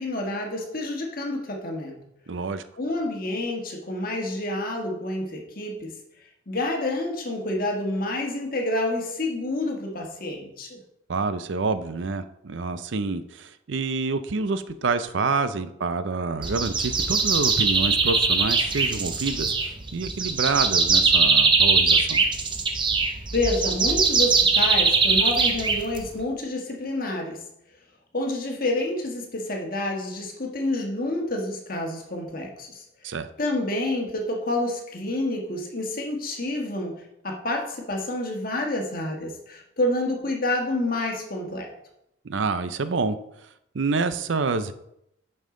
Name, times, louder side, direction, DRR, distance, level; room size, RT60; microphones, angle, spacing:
voice 1, 0.0-2.0 2.8-5.9 6.5-10.8 23.3-27.4 28.1-41.7, left 1 dB, 45° left, 1 dB, 1.4 m, -28 dB
voice 2, 2.3-2.6 11.1-19.5 19.9-22.2 33.0-33.3 42.2-43.2 43.7-44.7, right 4 dB, 65° right, 11 dB, 0.5 m, -27 dB
sound 1, 16.4-26.2, right 4 dB, 25° right, 0.7 m, -21 dB
9.1 x 5.5 x 3.8 m, 0.80 s
head